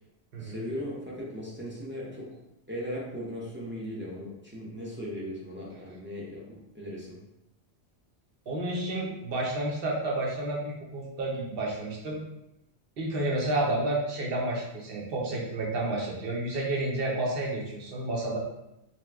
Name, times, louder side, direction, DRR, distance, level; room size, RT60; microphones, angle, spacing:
voice 1, 0.4-2.3 2.7-7.2, equal, 15° right, -6 dB, 0.5 m, -38 dB
voice 2, 8.5-12.2 13.0-18.4, right 2 dB, 60° right, -3 dB, 0.9 m, -30 dB
2.8 x 2.2 x 3.3 m, 0.88 s
omnidirectional pair, 1.1 m